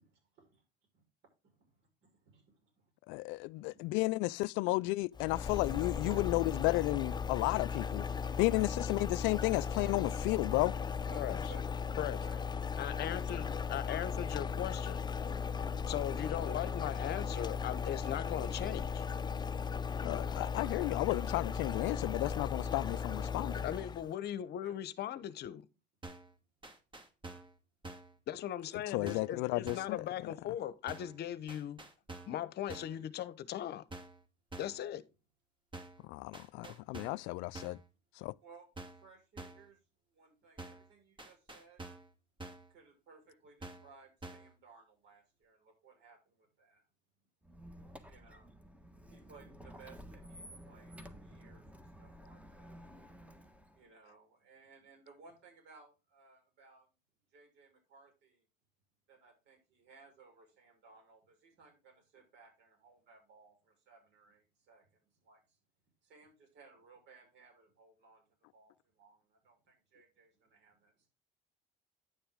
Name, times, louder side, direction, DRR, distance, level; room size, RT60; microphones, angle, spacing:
voice 1, 2.0-2.8 3.1-3.9 6.0-6.3 11.1-11.7 12.2-13.4 24.6-24.7 36.6-36.8 38.4-38.7 38.9-39.8 40.1-41.8 42.7-46.8 48.0-48.5 49.1-51.7 52.0-52.8 53.7-56.9 57.3-58.4 59.1-65.4 66.0-68.2 68.5-71.1, right 4 dB, 65° right, 6.0 m, -60 dB
voice 2, 3.1-8.0 8.4-10.7 20.0-23.7 28.9-30.0 36.1-37.8 38.2-38.3, left 22 dB, 70° left, 0.4 m, -33 dB
sound 1, 5.1-24.1, left 6 dB, 20° left, 0.5 m, -37 dB
voice 3, 12.8-15.0 15.9-19.0 23.6-25.6 28.3-31.8 32.3-33.8 34.6-35.0, left 11 dB, 55° left, 0.8 m, -39 dB
sound 2, 26.0-26.3 26.6-27.6 27.8-28.2 29.1-29.4 29.7-30.0 30.9-31.2 31.5-32.4 32.7-33.0 33.9-34.2 34.5-34.8 35.7-36.0 36.3-37.3 37.5-37.9 38.8-39.1 39.4-39.7 40.6-40.9 41.2-42.1 42.4-42.7 43.6-43.9 44.2-44.5, right 2 dB, 25° right, 1.9 m, -48 dB
Squeak, 47.4-53.8, equal, 5° right, 1.5 m, -53 dB
10.0 x 6.9 x 3.6 m
supercardioid pair, 80°, 20 cm